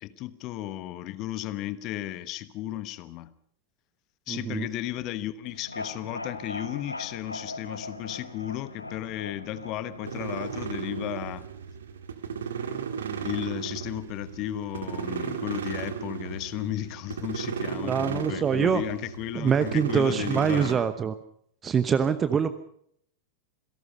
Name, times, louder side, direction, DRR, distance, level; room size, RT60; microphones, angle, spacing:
voice 1, 0.0-3.3 4.3-11.5 13.2-20.9, left 13 dB, 40° left, 15 dB, 1.1 m, -34 dB
voice 2, 4.3-4.7 17.8-18.8 19.3-21.1 21.6-22.5, right 7 dB, 20° right, 12 dB, 1.0 m, -24 dB
sound 1, 5.4-11.5, left 2 dB, 85° left, 1.6 m, -40 dB
sound 2, 10.0-20.8, right 7 dB, 65° right, 1.9 m, -35 dB
27.0 x 17.5 x 5.5 m, 0.68 s
figure-of-eight pair, 90°, 0 cm